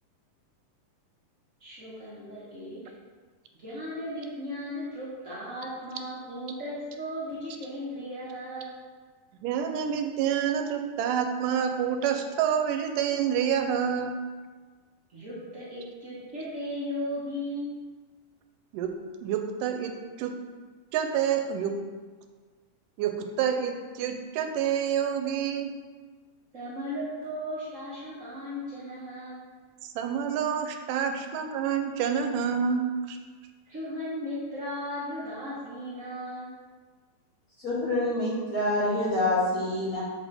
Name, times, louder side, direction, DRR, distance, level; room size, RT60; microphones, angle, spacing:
voice 1, 1.6-2.8 3.6-8.7 15.1-17.7 26.5-29.4 33.7-36.5, equal, 60° right, -9 dB, 0.7 m, -36 dB
voice 2, 9.4-14.2 18.7-19.0 19.2-20.4 20.9-21.8 23.0-25.7 29.8-33.2, right 8 dB, 80° right, 6 dB, 2.1 m, -28 dB
voice 3, 37.6-40.0, left 1 dB, 35° left, -10 dB, 1.7 m, -26 dB
7.3 x 4.8 x 4.1 m, 1.5 s
omnidirectional pair, 3.8 m